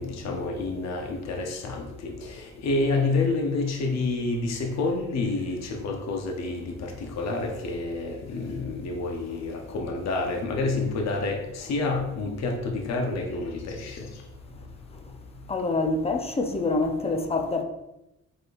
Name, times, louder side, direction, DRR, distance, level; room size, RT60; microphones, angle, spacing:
voice 1, 0.0-14.1, left 3 dB, 60° left, 0.9 m, -29 dB
voice 2, 15.5-17.6, left 3 dB, 20° left, 0.6 m, -26 dB
5.0 x 3.9 x 2.6 m
cardioid pair, 90°, 30 cm